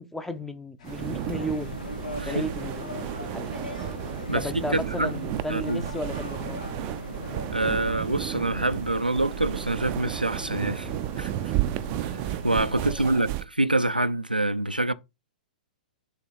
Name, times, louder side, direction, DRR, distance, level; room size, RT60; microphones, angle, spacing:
voice 1, 0.0-1.8 2.2-3.5 4.3-6.6 12.7-13.1, equal, 5° left, 0.6 m, -34 dB
sound 1, 0.8-7.5, left 5 dB, 50° left, 1.6 m, -55 dB
sound 2, 0.8-13.4, right 16 dB, 35° right, 0.4 m, -33 dB
sound 3, 0.9-12.9, left 1 dB, 75° left, 1.1 m, -39 dB
voice 2, 4.3-5.2 5.5-5.9 7.5-10.9 11.2-11.5 12.0-14.9, right 2 dB, 90° right, 0.4 m, -26 dB
6.9 x 2.9 x 5.8 m
figure-of-eight pair, 110°, 5 cm